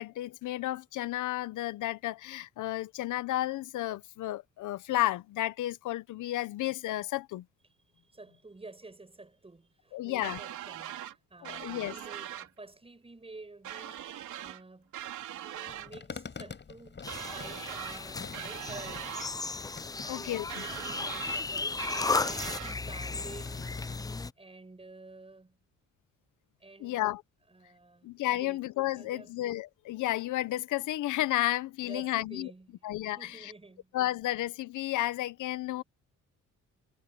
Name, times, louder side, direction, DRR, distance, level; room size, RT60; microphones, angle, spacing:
voice 1, 0.0-7.4 9.9-10.4 11.4-11.9 20.1-20.5 26.8-27.2 28.0-32.5 32.8-33.5 33.9-35.8, left 15 dB, 80° left, 0.9 m, -32 dB
voice 2, 8.0-15.0 15.3-19.1 20.0-23.6 24.4-25.6 26.6-27.0 27.5-28.6 28.9-29.3 31.8-32.9 33.2-34.0, right 3 dB, 20° right, 7.8 m, -50 dB
sound 1, 10.2-11.1 11.4-12.5 13.6-14.6 14.9-15.9 17.1-18.0 18.3-19.3 20.5-21.4 21.8-22.8, right 12 dB, 75° right, 3.3 m, -41 dB
sound 2, 15.7-24.0, left 5 dB, 35° left, 7.7 m, -47 dB
sound 3, 17.0-24.3, left 3 dB, 15° left, 0.4 m, -35 dB
cardioid pair, 90°, 30 cm